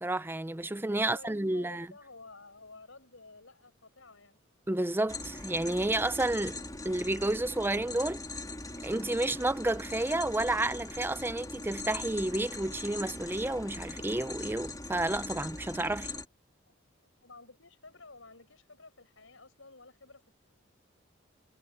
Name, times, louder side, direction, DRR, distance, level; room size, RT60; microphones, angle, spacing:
voice 1, 0.0-1.9 4.7-8.2 8.8-16.1, right 2 dB, 10° right, 0.6 m, -31 dB
voice 2, 0.9-4.4 16.7-16.8 17.2-20.3, left 3 dB, 75° left, 6.7 m, -53 dB
sound 1, 5.1-16.2, left 2 dB, 20° left, 3.5 m, -41 dB
head